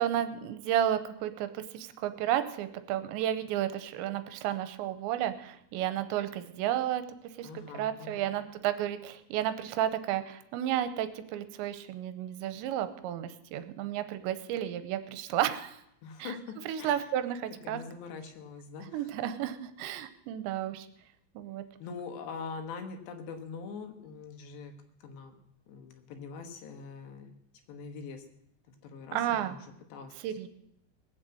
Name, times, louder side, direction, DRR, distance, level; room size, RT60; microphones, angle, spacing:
voice 1, 0.0-7.0 7.4-15.8 16.2-16.4 16.7-17.8 18.9-20.9 21.4-21.6 29.1-29.6 30.2-30.5, right 11 dB, 90° right, 11 dB, 3.1 m, -32 dB
voice 2, 7.4-8.3 16.0-17.1 17.6-19.1 21.8-24.7 25.0-27.4 27.7-28.3 28.7-30.1, left 5 dB, 75° left, 6 dB, 3.5 m, -43 dB
19.5 x 7.6 x 7.8 m, 0.76 s
omnidirectional pair, 5.2 m